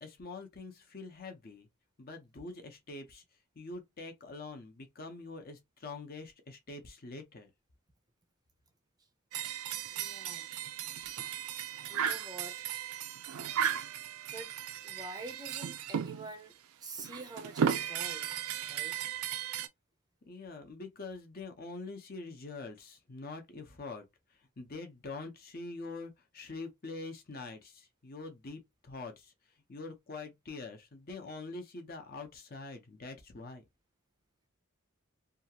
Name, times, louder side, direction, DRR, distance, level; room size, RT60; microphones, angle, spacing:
voice 1, 0.0-1.7 2.0-3.2 3.6-7.5 20.3-24.0 24.3-29.3 29.7-33.6, left 3 dB, 45° left, 0.7 m, -45 dB
sound 1, 9.3-16.3 17.0-19.7, right 8 dB, 80° right, 0.4 m, -36 dB
voice 2, 9.9-10.5 11.9-12.7 13.5-14.0 14.3-14.5 14.8-16.5 16.8-18.3 18.7-19.0, right 2 dB, 20° right, 0.5 m, -47 dB
2.8 x 2.4 x 2.8 m
head